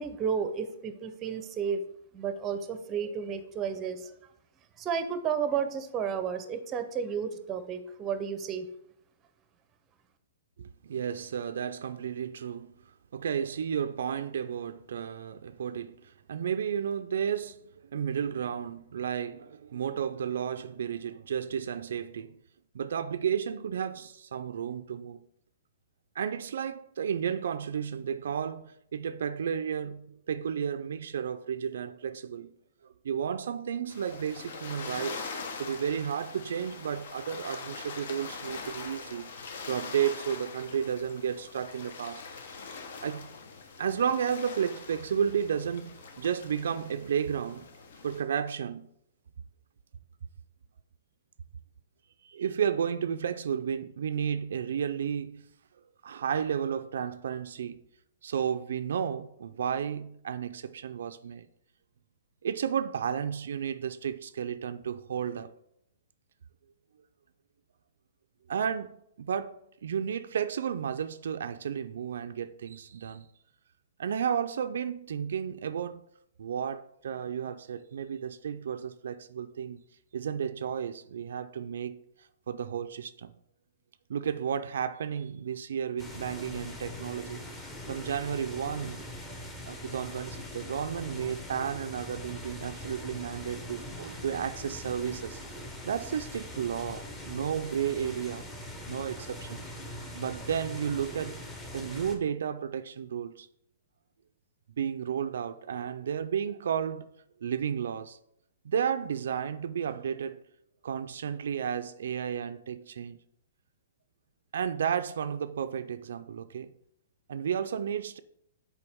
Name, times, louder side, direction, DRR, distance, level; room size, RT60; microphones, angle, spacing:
voice 1, 0.0-1.8 2.1-4.1 4.8-8.7, right 7 dB, 20° right, 0.6 m, -32 dB
voice 2, 10.6-12.7 13.1-22.4 22.7-25.2 26.2-32.5 32.8-35.2 35.6-39.3 39.7-42.6 43.0-43.3 43.8-47.7 48.0-48.9 52.2-55.5 56.0-57.8 58.2-61.5 62.4-65.5 68.5-73.3 74.0-76.0 76.4-79.8 80.1-83.3 84.1-89.0 89.7-95.4 95.8-98.4 98.9-99.6 100.1-101.4 101.7-103.5 104.8-107.1 107.4-108.2 108.6-110.4 110.8-113.2 114.5-116.7 117.3-118.2, right 8 dB, 75° right, 0.3 m, -32 dB
sound 1, 33.9-48.2, left 4 dB, 65° left, 0.9 m, -43 dB
sound 2, 86.0-102.2, left 1 dB, 15° left, 0.9 m, -42 dB
6.9 x 4.4 x 3.5 m
hypercardioid pair, 155°, 0 cm